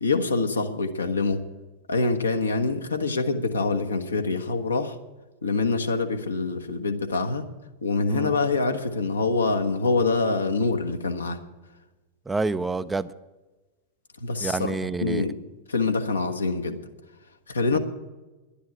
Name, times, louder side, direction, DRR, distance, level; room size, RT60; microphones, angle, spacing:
voice 1, 0.0-1.4 1.9-5.0 5.4-7.5 7.8-11.4 14.2-14.7 15.0-15.4 15.7-16.8 17.5-17.8, left 3 dB, 75° left, 6 dB, 1.2 m, -25 dB
voice 2, 12.3-13.1 14.4-15.2 17.7-17.8, right 3 dB, 10° right, 14 dB, 0.5 m, -28 dB
11.5 x 10.0 x 8.8 m, 1.2 s
figure-of-eight pair, 90°, 0 cm